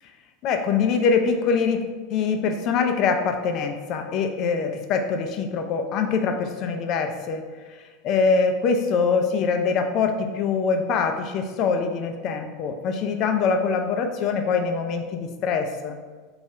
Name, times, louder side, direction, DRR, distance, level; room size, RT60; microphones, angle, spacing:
voice 1, 0.4-7.4 8.0-16.0, left 5 dB, 50° left, 5 dB, 0.4 m, -24 dB
3.0 x 2.3 x 2.8 m, 1.4 s
hypercardioid pair, 85°, 0 cm